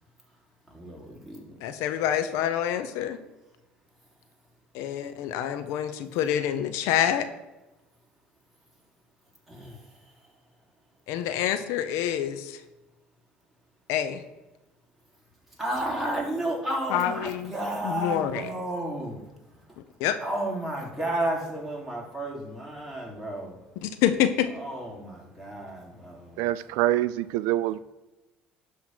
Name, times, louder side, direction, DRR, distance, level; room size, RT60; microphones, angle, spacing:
voice 1, 0.7-1.6 9.5-10.4 15.5-23.9 24.5-26.5, right 1 dB, 5° right, -2 dB, 3.5 m, -33 dB
voice 2, 1.6-3.2 4.7-7.3 11.1-12.6 13.9-14.2 16.9-17.5 17.8-18.4 20.0-20.1 23.8-24.5, left 10 dB, 70° left, 10 dB, 0.8 m, -27 dB
voice 3, 26.4-27.8, right 14 dB, 75° right, 15 dB, 0.4 m, -25 dB
11.5 x 3.8 x 6.3 m, 1.0 s
hypercardioid pair, 70°, 5 cm